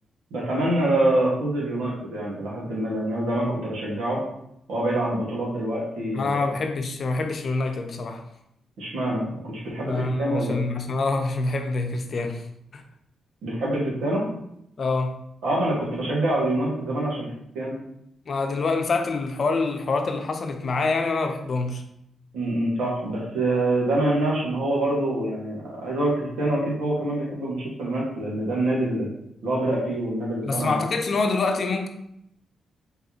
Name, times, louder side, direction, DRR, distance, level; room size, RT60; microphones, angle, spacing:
voice 1, 0.3-4.2 4.7-6.4 8.8-10.6 13.4-14.2 15.4-17.3 17.6-17.7 22.3-29.1 29.4-30.8, right 1 dB, 80° right, 1.7 m, -25 dB
voice 2, 6.1-8.2 9.9-12.4 12.7-12.8 14.8-15.2 18.3-21.8 30.4-31.9, left 3 dB, 55° left, 0.6 m, -26 dB
4.0 x 3.9 x 2.9 m
cardioid pair, 65°, 0 cm